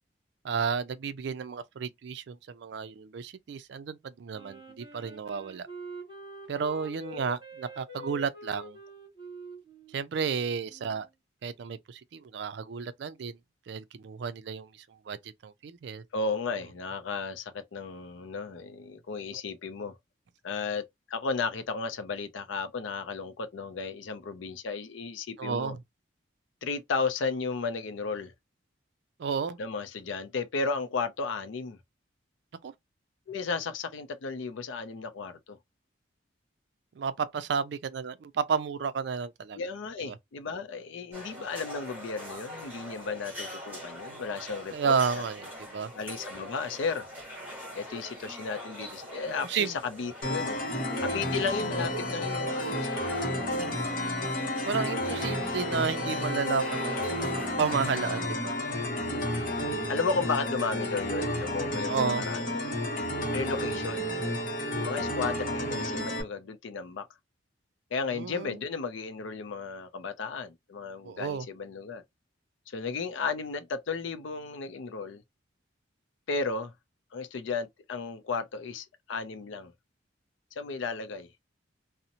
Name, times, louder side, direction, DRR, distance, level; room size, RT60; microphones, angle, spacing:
voice 1, 0.4-5.7 6.5-8.8 9.9-11.1 11.4-13.4 13.7-16.0 25.4-25.8 29.2-29.6 32.6-32.7 36.9-39.6 40.0-40.2 44.7-45.9 49.4-49.8 51.9-52.1 52.6-52.7 54.7-57.2 57.6-58.5 61.9-62.2 68.1-68.6 71.0-71.5, right 6 dB, 60° right, 0.3 m, -32 dB
Wind instrument woodwind instrument, 4.3-11.1, right 1 dB, 25° right, 1.2 m, -46 dB
voice 2, 16.1-20.0 20.4-25.7 26.6-28.3 29.6-31.8 33.3-35.6 39.5-45.2 45.9-47.1 47.7-50.6 51.0-53.1 58.8-59.3 59.9-62.6 63.3-64.1 64.7-67.1 67.9-72.0 72.7-75.2 76.3-76.7 77.1-79.7 80.6-81.3, left 4 dB, 75° left, 0.4 m, -34 dB
sound 1, 41.1-58.3, equal, 10° right, 1.2 m, -42 dB
sound 2, 50.2-66.2, left 1 dB, 45° left, 0.7 m, -31 dB
2.5 x 2.0 x 2.8 m
head